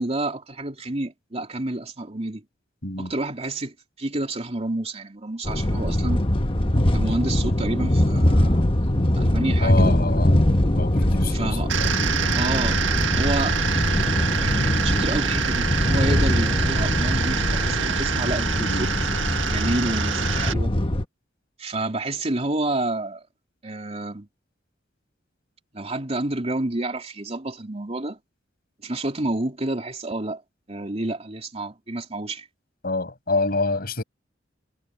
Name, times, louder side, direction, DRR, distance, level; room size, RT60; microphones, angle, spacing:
voice 1, 0.0-2.4 3.0-6.2 6.9-10.0 11.2-11.7 12.3-13.6 14.4-18.9 19.5-20.7 21.6-23.2 23.6-24.3 25.7-28.2 28.8-30.4 30.7-32.5, right 2 dB, 35° right, 3.2 m, -29 dB
sound 1, 5.5-21.0, left 1 dB, 30° left, 1.3 m, -22 dB
voice 2, 9.6-10.3 10.8-11.9 18.6-18.9 32.8-34.0, left 3 dB, 55° left, 6.2 m, -27 dB
sound 2, 11.7-20.5, right 7 dB, 90° right, 1.8 m, -26 dB
head